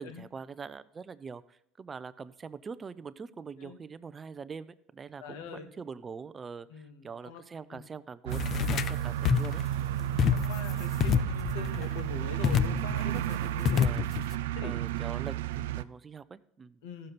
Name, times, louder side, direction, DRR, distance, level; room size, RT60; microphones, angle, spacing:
voice 1, 0.0-9.6 13.3-14.1 14.6-16.8, right 5 dB, 25° right, 15 dB, 0.5 m, -43 dB
voice 2, 5.2-5.7 6.7-6.9 7.2-7.4 7.7-7.9 10.0-13.8 14.5-14.7 16.8-17.1, left 5 dB, 85° left, 7 dB, 1.3 m, -42 dB
sound 1, 8.3-9.0 9.3-9.6 10.2-10.7 11.0-11.9 12.4-13.1 13.7-14.4, left 9 dB, 45° left, 0.4 m, -27 dB
sound 2, 8.3-15.8, right 12 dB, 90° right, 0.3 m, -32 dB
14.5 x 6.5 x 4.2 m, 0.71 s
supercardioid pair, 100°, 0 cm